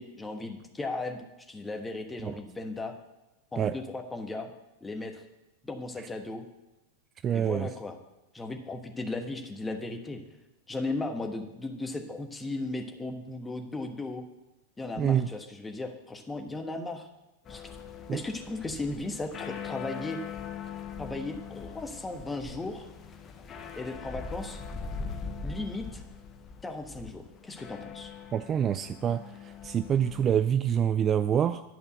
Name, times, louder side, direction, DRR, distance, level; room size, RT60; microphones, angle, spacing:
voice 1, 0.0-2.9 3.5-4.5 4.8-5.2 5.6-6.4 7.3-7.9 8.3-10.2 10.7-14.2 14.8-17.1 17.5-17.6 18.1-20.2 21.0-22.9 23.7-24.6 25.4-26.0 26.6-28.1, left 2 dB, 10° left, 5 dB, 1.2 m, -36 dB
voice 2, 7.2-7.7 15.0-15.3 18.1-18.2 28.3-31.6, right 9 dB, 25° right, 11 dB, 0.3 m, -26 dB
sound 1, 17.4-30.4, left 6 dB, 25° left, 1.0 m, -41 dB
11.0 x 5.5 x 8.0 m, 0.97 s
figure-of-eight pair, 90°, 0 cm